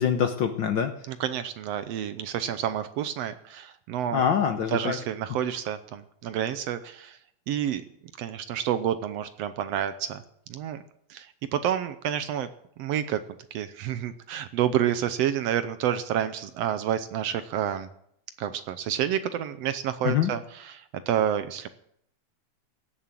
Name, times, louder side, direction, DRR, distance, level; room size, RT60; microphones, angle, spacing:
voice 1, 0.0-0.9 4.1-5.0 20.0-20.3, left 8 dB, 90° left, 7 dB, 1.0 m, -24 dB
voice 2, 1.1-4.2 4.7-7.2 7.5-7.8 8.2-10.2 10.5-10.8 11.1-12.5 12.8-13.2 13.5-17.9 18.4-21.7, right 10 dB, 75° right, 11 dB, 1.7 m, -29 dB
16.5 x 7.2 x 9.0 m, 0.72 s
omnidirectional pair, 3.3 m